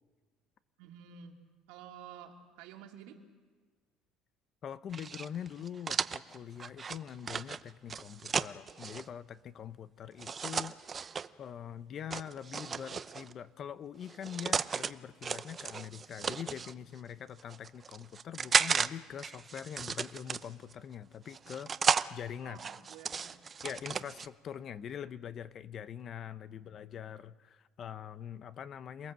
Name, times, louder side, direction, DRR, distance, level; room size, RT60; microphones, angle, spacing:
voice 1, 0.8-1.4 1.7-3.2 22.4-23.4 26.5-26.9, right 8 dB, 85° right, 2 dB, 3.1 m, -51 dB
voice 2, 4.6-10.7 11.4-21.7 22.1-22.6 23.6-29.1, left 9 dB, 45° left, 14 dB, 0.8 m, -43 dB
sound 1, 4.9-9.0 10.2-11.3 12.1-13.3 14.0-14.9 15.2-16.7 17.4-18.9 19.2-20.7 21.3-22.1 22.6-24.3, right 6 dB, 30° right, 0.7 m, -34 dB
27.5 x 19.5 x 7.7 m, 1.5 s
cardioid pair, 110°, 0 cm